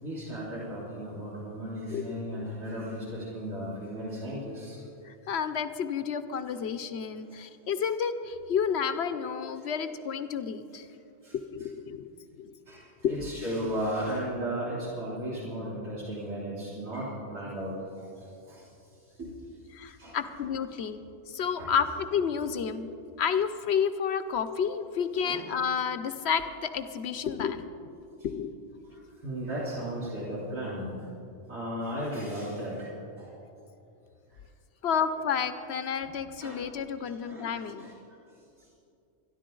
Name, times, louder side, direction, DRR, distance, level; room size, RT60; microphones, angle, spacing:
voice 1, 0.0-4.8 7.2-7.4 11.2-11.3 12.7-18.7 19.2-19.3 20.0-20.2 21.6-21.7 25.2-25.5 29.2-30.9 31.5-32.9 33.2-33.4 36.0-36.1 36.4-36.6 37.1-37.9, equal, 80° right, -9 dB, 3.5 m, -35 dB
voice 2, 1.9-2.5 5.0-10.9 11.3-12.1 12.3-12.5 13.0-13.2 19.7-21.0 21.3-22.9 23.2-27.9 28.2-28.5 34.8-37.9, left 7 dB, 60° left, 11 dB, 0.8 m, -30 dB
25.5 x 10.5 x 3.8 m, 2.7 s
omnidirectional pair, 1.3 m